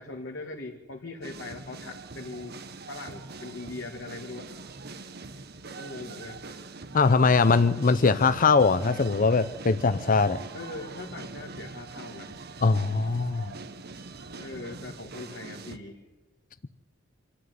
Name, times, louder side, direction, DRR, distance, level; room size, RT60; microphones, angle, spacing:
voice 1, 0.0-2.6 2.9-4.5 5.8-6.4 10.5-12.3 14.4-16.0, left 2 dB, 65° left, 0 dB, 2.3 m, -40 dB
sound 1, 1.2-15.8, right 3 dB, 55° right, 1.3 m, -43 dB
voice 2, 6.9-10.4 12.6-13.5, left 4 dB, 45° left, 12 dB, 0.6 m, -21 dB
26.5 x 13.0 x 9.5 m, 1.2 s
head